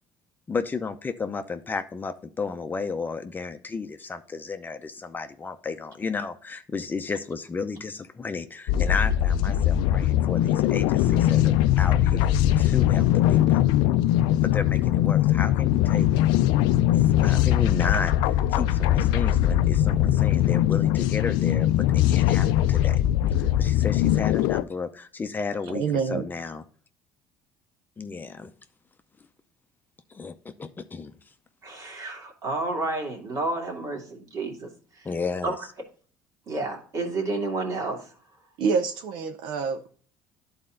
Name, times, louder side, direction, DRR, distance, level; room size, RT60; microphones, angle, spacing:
voice 1, 0.5-13.6 14.4-16.1 17.0-21.7 21.9-23.0 23.4-25.8 26.1-26.6 28.0-28.5 30.1-31.1 35.0-35.5, left 4 dB, 25° left, 8 dB, 0.6 m, -33 dB
sound 1, 8.7-24.6, left 12 dB, 75° left, 0.4 m, -21 dB
voice 2, 25.7-26.2 38.6-39.9, right 5 dB, 70° right, 7 dB, 0.7 m, -26 dB
voice 3, 31.6-34.7 35.0-35.1 35.4-35.6 36.5-38.1, right 2 dB, 45° right, 1 dB, 2.4 m, -30 dB
11.0 x 4.3 x 3.7 m, 0.43 s
supercardioid pair, 95°, 8 cm